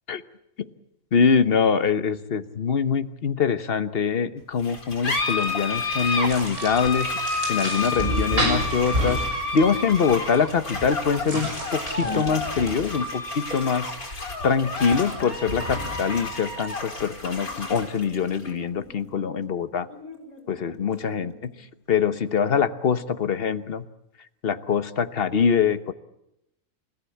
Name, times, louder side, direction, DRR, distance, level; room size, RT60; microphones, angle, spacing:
voice 1, 1.1-7.1 7.5-9.2 9.5-13.9 14.4-19.9 20.5-21.5 21.9-23.8 24.4-25.9, left 6 dB, 45° left, 12 dB, 1.2 m, -24 dB
sound 1, 4.6-21.6, left 3 dB, 85° left, 5.0 m, -31 dB
sound 2, 5.5-5.8 6.2-6.6 8.1-10.1 10.4-10.8 11.5-11.6 12.4-13.9 15.5-16.4, left 1 dB, 45° right, 5.4 m, -40 dB
sound 3, 6.3-12.2, equal, 60° right, 6.7 m, -29 dB
29.5 x 15.0 x 8.4 m, 0.83 s
omnidirectional pair, 1.5 m